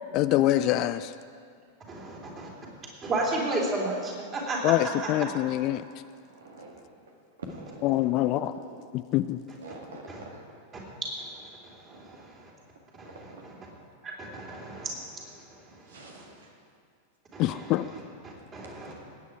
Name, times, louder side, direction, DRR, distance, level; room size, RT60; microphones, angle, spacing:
voice 1, 0.1-1.1 4.6-5.8 7.8-8.5 8.9-9.4 17.4-17.9, left 14 dB, 40° left, 13 dB, 0.3 m, -25 dB
voice 2, 1.9-2.5 3.0-4.9 10.1-10.2 11.8-12.5 13.0-13.1 14.0-15.3 17.3-18.9, right 2 dB, 25° right, -2 dB, 3.5 m, -33 dB
voice 3, 6.3-6.7 7.4-8.8 9.6-10.4 11.9-12.1 13.2-13.4 15.7-16.5, right 2 dB, 65° right, 1 dB, 1.7 m, -45 dB
18.5 x 9.4 x 4.8 m, 2.2 s
figure-of-eight pair, 90°, 0 cm